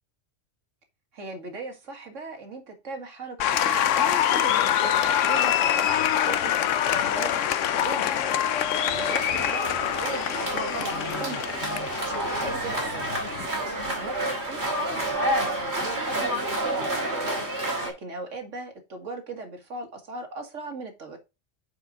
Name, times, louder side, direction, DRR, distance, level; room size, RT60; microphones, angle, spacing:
voice 1, 1.1-4.9 5.2-8.3 8.9-11.6 12.0-13.0 13.5-17.4 17.8-21.2, right 3 dB, 90° right, 2.1 m, -38 dB
Applause, 3.4-13.5, left 10 dB, 90° left, 1.0 m, -25 dB
sound 1, 8.9-17.9, right 1 dB, 60° right, 2.8 m, -29 dB
8.1 x 4.9 x 3.8 m
omnidirectional pair, 1.2 m